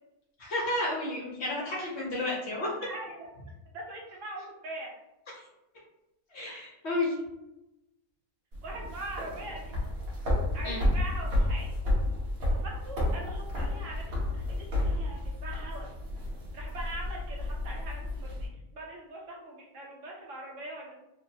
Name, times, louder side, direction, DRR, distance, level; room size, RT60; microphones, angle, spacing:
voice 1, 0.4-2.7 6.3-7.1 10.6-10.8, left 2 dB, 55° left, -4 dB, 0.9 m, -31 dB
voice 2, 2.8-3.3 3.7-4.9 6.4-6.6 8.6-9.7 10.5-11.7 12.5-15.9 16.5-20.9, right 2 dB, 65° right, -2 dB, 1.0 m, -42 dB
sound 1, 8.5-18.5, left 1 dB, 85° right, 1.4 m, -31 dB
3.1 x 2.0 x 2.7 m, 0.92 s
omnidirectional pair, 1.5 m